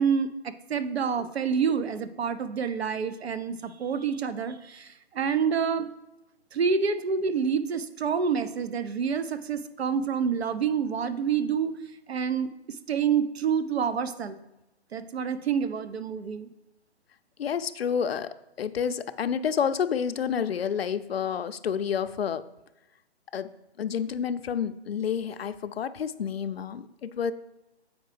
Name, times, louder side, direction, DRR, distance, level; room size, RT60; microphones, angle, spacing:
voice 1, 0.0-5.9 6.5-11.8 12.1-14.4 14.9-16.5, right 6 dB, 70° right, 12 dB, 0.6 m, -28 dB
voice 2, 17.4-22.4 23.3-23.5 23.8-27.3, left 7 dB, 65° left, 11 dB, 0.4 m, -29 dB
7.8 x 5.0 x 3.2 m, 0.95 s
hypercardioid pair, 180°, 33 cm